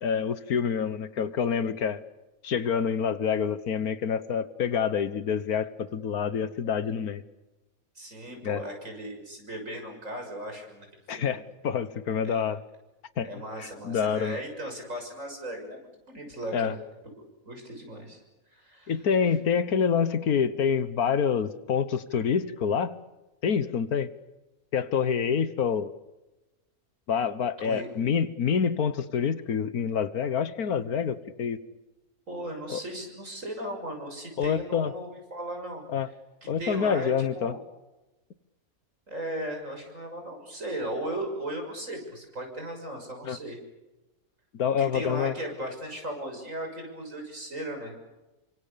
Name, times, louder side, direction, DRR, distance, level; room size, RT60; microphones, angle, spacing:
voice 1, 0.0-2.0 2.4-7.2 8.4-8.6 11.1-12.6 13.2-13.3 13.6-14.4 16.5-16.8 18.9-23.0 23.4-24.1 24.7-25.9 27.1-31.6 32.7-32.8 34.4-34.9 35.9-36.1 36.5-37.6 43.2-43.4 44.5-45.3, left 7 dB, 85° left, 14 dB, 1.7 m, -27 dB
voice 2, 8.0-11.4 12.2-12.4 13.2-16.8 17.2-18.2 18.5-18.9 22.1-22.2 27.6-27.9 32.3-36.1 36.4-37.6 39.1-43.6 44.8-47.9, right 1 dB, 60° right, 3 dB, 7.0 m, -37 dB
29.0 x 25.0 x 6.9 m, 1.0 s
omnidirectional pair, 1.5 m